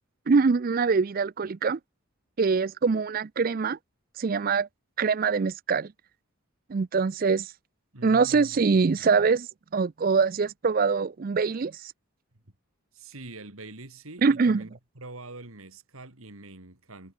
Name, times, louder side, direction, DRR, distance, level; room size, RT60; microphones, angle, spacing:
voice 1, 0.3-1.8 2.4-3.8 4.2-4.7 5.0-5.9 6.7-7.5 8.0-9.5 9.7-11.9 14.2-14.6, right 5 dB, 40° right, 0.4 m, -24 dB
voice 2, 7.9-9.1 12.9-17.1, right 2 dB, 80° right, 3.2 m, -45 dB
head